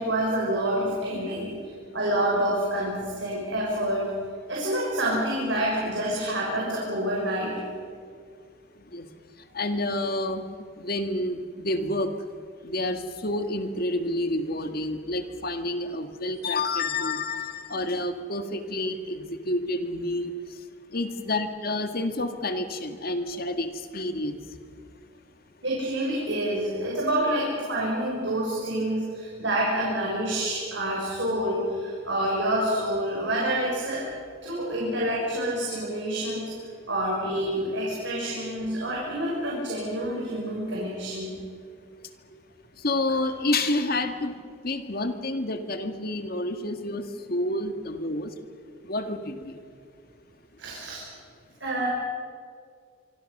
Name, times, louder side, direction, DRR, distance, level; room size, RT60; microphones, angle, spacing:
voice 1, 0.0-1.5 1.9-4.1 4.5-7.5 25.6-34.1 34.4-36.5 36.9-41.3 50.6-51.0 51.6-51.9, right 1 dB, 65° right, -4 dB, 6.0 m, -27 dB
voice 2, 9.5-10.4 10.8-12.1 12.6-20.3 20.9-23.7 23.9-24.4 42.8-44.3 44.6-47.0 47.3-48.3 48.9-49.5, left 2 dB, 50° left, 7 dB, 1.9 m, -29 dB
25.0 x 25.0 x 6.7 m, 2.2 s
head